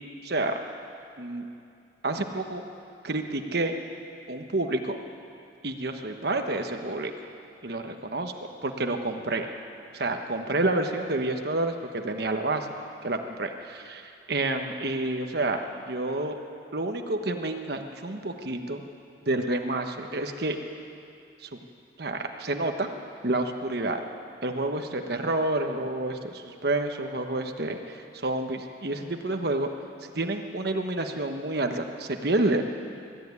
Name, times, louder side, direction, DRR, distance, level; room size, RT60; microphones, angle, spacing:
voice 1, 0.2-0.6 1.2-1.5 2.0-2.6 3.0-3.7 4.3-5.0 5.6-7.1 7.6-8.3 8.6-9.5 9.9-12.7 13.0-15.6 15.9-16.4 16.7-18.8 19.3-20.6 21.4-21.6 22.0-22.9 23.2-24.0 24.4-29.7 30.1-32.6, right 2 dB, 60° right, 5 dB, 1.2 m, -29 dB
22.0 x 13.5 x 9.6 m, 2.5 s
head